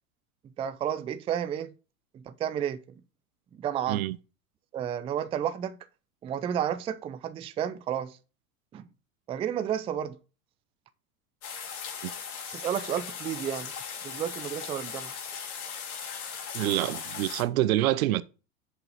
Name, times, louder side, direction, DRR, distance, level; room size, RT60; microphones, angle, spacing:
voice 1, 0.6-1.7 2.1-2.8 3.6-4.0 4.7-5.8 6.2-8.2 8.7-8.9 9.3-10.2 12.5-13.7 14.0-15.1, right 9 dB, 15° right, 0.3 m, -31 dB
sound 1, 11.4-17.4, left 7 dB, 75° left, 2.2 m, -38 dB
voice 2, 16.5-18.2, right 15 dB, 70° right, 0.7 m, -26 dB
6.4 x 5.4 x 5.2 m
hypercardioid pair, 95°, 44 cm